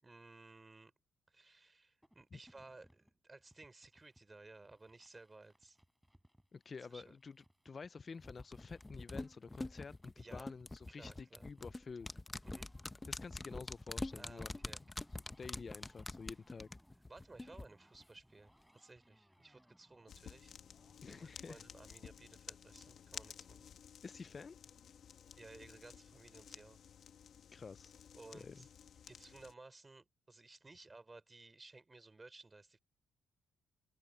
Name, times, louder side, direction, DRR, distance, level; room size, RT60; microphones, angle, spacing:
voice 1, 0.0-0.9 1.3-5.8 6.9-7.1 10.2-10.5 10.9-11.5 12.4-12.7 14.2-15.1 17.1-20.6 21.0-23.7 25.4-26.8 28.1-28.7 29.1-32.8, right 3 dB, 20° right, 4.2 m, -58 dB
sound 1, 2.0-21.0, equal, ahead, 5.1 m, -69 dB
voice 2, 6.5-12.1 13.1-14.5 15.4-16.7 21.0-21.6 24.0-24.6 27.5-27.9 28.3-28.6, left 5 dB, 35° left, 0.4 m, -50 dB
sound 2, 8.2-17.6 17.9-18.0, left 2 dB, 15° left, 0.9 m, -45 dB
sound 3, 20.1-29.5, left 8 dB, 60° left, 1.8 m, -55 dB
cardioid pair, 90°, 0 cm